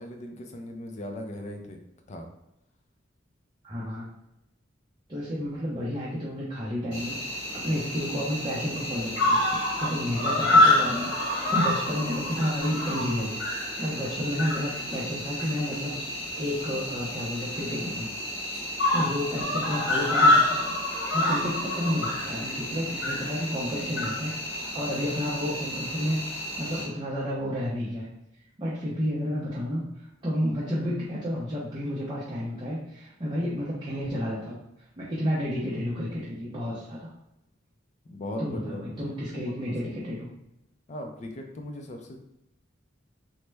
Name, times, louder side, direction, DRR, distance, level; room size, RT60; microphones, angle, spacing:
voice 1, 0.0-1.8 2.1-2.3 38.1-40.0 40.9-42.2, left 1 dB, 35° left, 3 dB, 0.4 m, -39 dB
voice 2, 3.6-4.1 5.1-18.1 18.6-28.1 28.6-34.6 35.0-37.1 38.4-40.3, equal, 25° right, -8 dB, 0.5 m, -31 dB
Cricket, 6.9-26.8, left 1 dB, 65° left, 1.3 m, -27 dB
3.1 x 2.1 x 3.2 m, 0.86 s
head